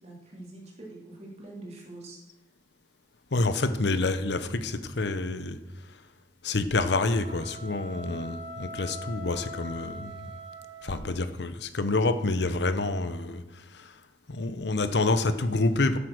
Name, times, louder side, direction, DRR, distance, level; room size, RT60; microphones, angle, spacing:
voice 1, 0.0-2.2, right 2 dB, 35° right, -3 dB, 3.1 m, -44 dB
voice 2, 3.3-5.6 6.4-10.3 10.8-13.4 13.7-13.9 14.3-16.0, left 2 dB, 70° left, 11 dB, 0.8 m, -27 dB
sound 1, 6.7-11.3, equal, 80° right, 1.2 m, -43 dB
11.5 x 7.9 x 6.3 m, 1.0 s
head